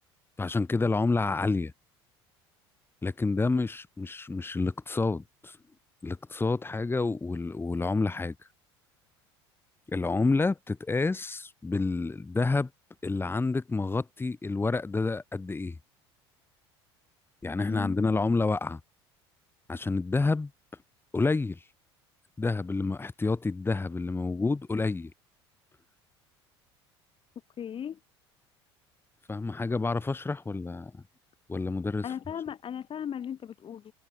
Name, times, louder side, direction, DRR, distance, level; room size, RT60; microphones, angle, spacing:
voice 1, 0.4-1.7 3.0-5.6 6.0-8.3 9.9-12.7 13.0-15.8 17.4-18.8 19.7-20.5 21.1-21.6 22.4-25.1 29.3-31.0 31.5-32.1, left 3 dB, 15° left, 3.0 m, -29 dB
voice 2, 17.7-18.2 27.6-28.0 32.0-33.9, left 9 dB, 40° left, 5.1 m, -37 dB
hypercardioid pair, 75°, 14 cm